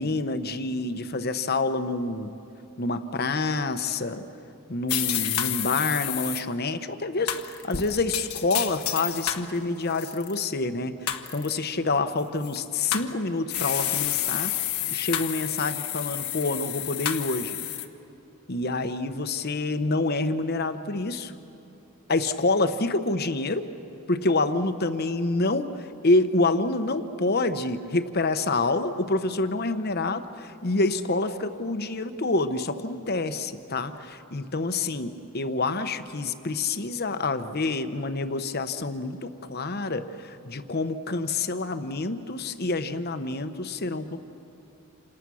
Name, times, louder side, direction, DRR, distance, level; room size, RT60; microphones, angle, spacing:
voice 1, 0.0-2.4 2.8-4.2 4.7-14.5 14.9-17.6 18.5-21.3 22.1-23.7 24.1-44.2, left 3 dB, 45° left, 10 dB, 1.0 m, -27 dB
sound 1, 4.9-6.4 7.3-9.5 9.9-10.4 11.1-11.5 12.4-13.1 13.5-17.8, left 11 dB, 80° left, 1.3 m, -30 dB
28.0 x 27.5 x 6.3 m, 2.9 s
head